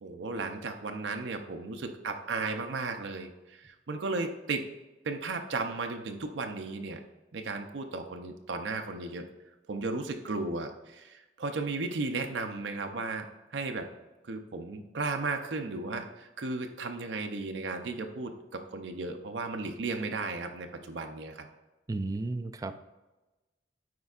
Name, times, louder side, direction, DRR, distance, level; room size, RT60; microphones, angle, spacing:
voice 1, 0.0-4.7 5.0-7.0 7.3-9.3 9.7-13.3 13.5-13.9 14.2-21.5, right 3 dB, 85° right, 5 dB, 0.6 m, -35 dB
voice 2, 21.9-22.9, right 2 dB, 20° right, 9 dB, 0.3 m, -34 dB
9.4 x 4.4 x 2.4 m, 1.1 s
head